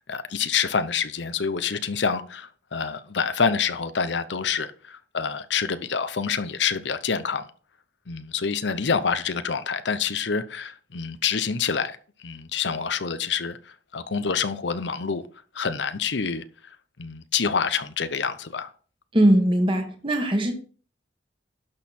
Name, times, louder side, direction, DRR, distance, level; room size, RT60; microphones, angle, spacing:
voice 1, 0.0-7.5 8.1-12.0 12.2-13.6 13.9-15.2 15.5-16.4 17.0-18.7, left 6 dB, 70° left, 0.8 m, -27 dB
voice 2, 19.1-20.5, right 1 dB, 30° right, 1.7 m, -20 dB
11.5 x 6.5 x 4.3 m
head